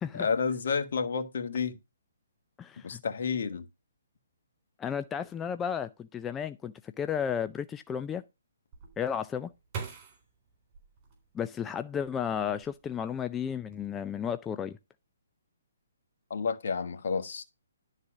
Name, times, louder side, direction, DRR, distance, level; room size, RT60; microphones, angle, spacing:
voice 1, 0.1-1.8 2.8-3.6 16.3-17.4, left 5 dB, 60° left, 1.3 m, -30 dB
voice 2, 2.6-3.0 4.8-8.2 9.0-9.5 11.3-14.8, left 8 dB, 15° left, 0.4 m, -33 dB
sound 1, 8.7-11.8 12.3-13.1 13.4-13.9, right 6 dB, 30° right, 3.7 m, -44 dB
11.0 x 4.1 x 6.1 m
hypercardioid pair, 140°, 0 cm